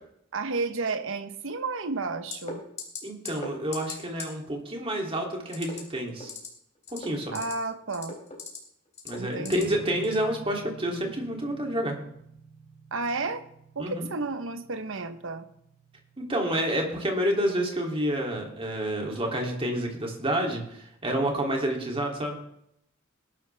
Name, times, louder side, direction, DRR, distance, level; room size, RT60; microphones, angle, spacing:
voice 1, 0.3-2.6 7.3-8.2 9.2-9.7 12.9-13.4 13.7-15.5, right 3 dB, 65° right, 10 dB, 1.1 m, -32 dB
sound 1, 2.3-2.5 2.8-3.0 3.3-3.5 3.7-4.2 5.5-5.8 6.2-6.5 6.8-7.5 7.9-8.6 9.0-9.6 10.0-10.2, left 5 dB, 35° left, 3.4 m, -37 dB
voice 2, 3.0-6.3 6.9-7.3 9.0-12.0 13.8-14.1 16.2-22.4, right 1 dB, 25° right, 0 dB, 2.9 m, -29 dB
sound 2, 9.6-17.2, right 3 dB, 10° left, 5.6 m, -49 dB
19.5 x 11.5 x 3.5 m, 0.74 s
head